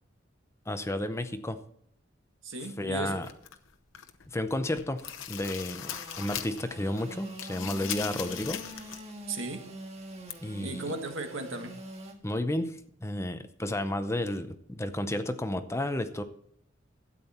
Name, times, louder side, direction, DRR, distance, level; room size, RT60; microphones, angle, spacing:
voice 1, 0.7-1.6 2.8-3.3 4.3-8.6 10.4-10.9 12.2-16.2, left 1 dB, 15° left, 9 dB, 0.7 m, -32 dB
voice 2, 2.4-3.2 9.3-9.6 10.6-11.7, right 2 dB, 85° right, 5 dB, 1.7 m, -36 dB
sound 1, 3.2-4.3 4.6-6.7 7.0-9.1 9.4-9.5 10.3-10.4, left 10 dB, 75° left, 0.9 m, -39 dB
Engine / Sawing, 5.9-12.1, right 1 dB, 35° right, 1.8 m, -45 dB
12.5 x 9.0 x 4.3 m, 0.69 s
head